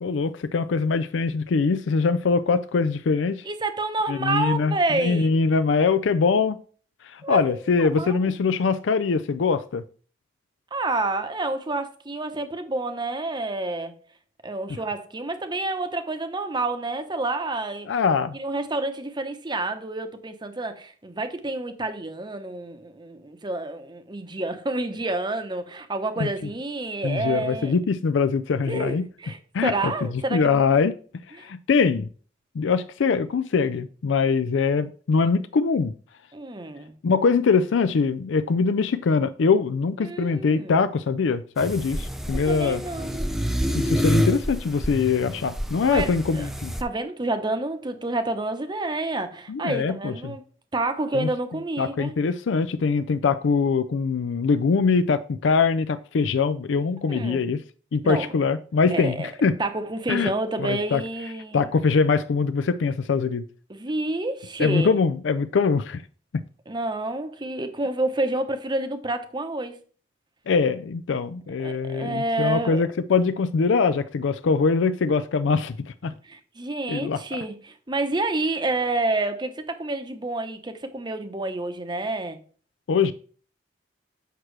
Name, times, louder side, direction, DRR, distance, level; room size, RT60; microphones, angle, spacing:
voice 1, 0.0-3.4 4.1-6.6 7.0-9.8 17.9-18.4 26.2-26.3 27.0-29.1 29.5-30.9 31.3-32.1 32.5-35.9 37.0-42.8 43.7-46.7 49.5-50.4 51.1-51.3 51.8-57.6 57.9-59.6 60.1-60.3 60.6-61.0 61.5-63.4 64.6-66.0 70.5-76.1 76.9-77.4 82.9-83.1, left 5 dB, 70° left, 0.4 m, -23 dB
voice 2, 3.4-5.4 7.2-8.2 10.7-13.9 14.4-17.9 18.3-27.7 28.7-30.6 31.4-31.5 36.3-36.9 40.0-40.8 42.3-43.3 45.8-46.1 46.3-46.5 46.8-50.4 50.7-52.1 57.0-57.4 58.0-58.3 58.9-59.3 59.6-61.7 63.7-64.9 66.7-69.8 71.6-72.8 76.2-82.4, right 2 dB, 25° right, 0.8 m, -29 dB
sound 1, 41.6-46.8, equal, ahead, 0.5 m, -27 dB
8.0 x 6.0 x 3.2 m
head